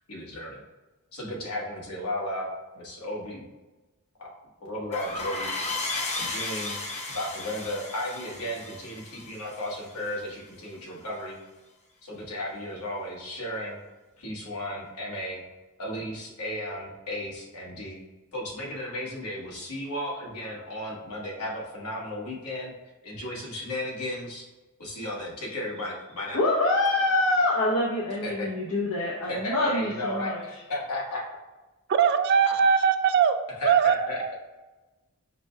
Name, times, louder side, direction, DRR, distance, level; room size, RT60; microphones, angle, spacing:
voice 1, 0.1-0.6 1.1-3.4 4.2-4.3 4.6-5.5 6.1-6.8 7.1-11.4 12.0-13.8 14.2-15.4 15.8-18.0 18.3-22.7 23.0-24.4 24.8-26.4 28.2-28.5 29.3-31.2 33.6-34.3, left 1 dB, 80° left, -3 dB, 1.3 m, -34 dB
sound 1, 4.9-10.2, left 2 dB, 30° left, 0.7 m, -34 dB
voice 2, 26.3-30.4, left 2 dB, 65° left, -5 dB, 0.7 m, -25 dB
voice 3, 31.9-33.4 33.6-34.3, right 7 dB, 50° right, 8 dB, 0.3 m, -21 dB
5.0 x 2.2 x 4.3 m, 1.1 s
head